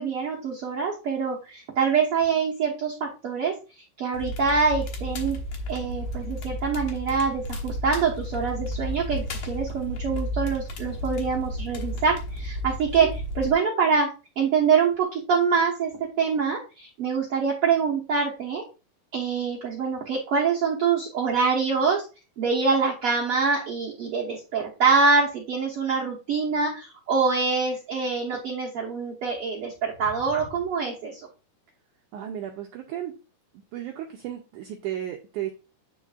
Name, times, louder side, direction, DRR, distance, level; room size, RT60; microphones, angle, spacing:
voice 1, 0.0-3.5 4.0-5.4 5.7-13.1 13.4-14.1 14.4-15.9 16.2-18.6 19.1-22.1 22.4-31.2, right 5 dB, 75° right, -4 dB, 1.3 m, -25 dB
Crackle, 4.1-13.5, equal, 60° left, 2.1 m, -33 dB
voice 2, 32.1-33.2 33.7-35.5, right 11 dB, 90° right, 3 dB, 1.7 m, -34 dB
9.5 x 4.5 x 2.4 m, 0.31 s
omnidirectional pair, 4.4 m